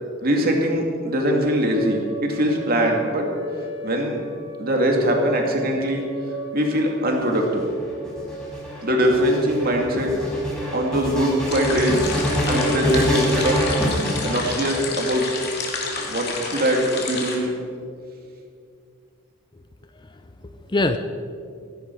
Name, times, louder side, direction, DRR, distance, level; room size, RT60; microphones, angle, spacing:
voice 1, 0.2-3.2 3.8-4.2 4.6-6.0 6.5-7.6 8.8-10.1 10.7-12.0 12.5-13.6 14.2-15.3 16.1-17.5, equal, 45° right, 1 dB, 2.5 m, -22 dB
sound 1, 1.2-10.1, equal, 25° right, 4.1 m, -37 dB
sound 2, 7.1-15.1 15.9-16.7, equal, 5° left, 4.3 m, -26 dB
sound 3, 11.5-17.4, left 4 dB, 50° left, 2.8 m, -30 dB
voice 2, 20.0-21.0, left 2 dB, 20° left, 9 dB, 0.5 m, -25 dB
16.5 x 16.0 x 4.8 m, 2.4 s
head